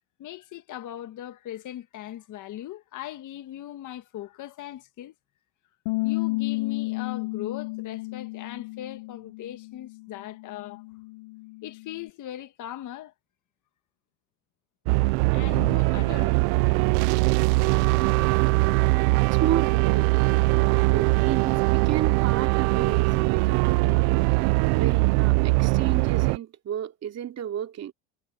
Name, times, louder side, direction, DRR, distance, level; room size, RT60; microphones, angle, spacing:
voice 1, 0.2-5.1 6.0-10.8 11.6-13.1 15.3-16.4, left 12 dB, 50° left, 1.8 m, -39 dB
Bass guitar, 5.9-12.1, left 24 dB, 80° left, 1.7 m, -32 dB
sound 1, 14.9-26.4, right 27 dB, 75° right, 0.6 m, -21 dB
voice 2, 19.1-20.1 20.6-24.3 24.7-27.9, right 10 dB, 40° right, 3.0 m, -33 dB
supercardioid pair, 115°, 40 cm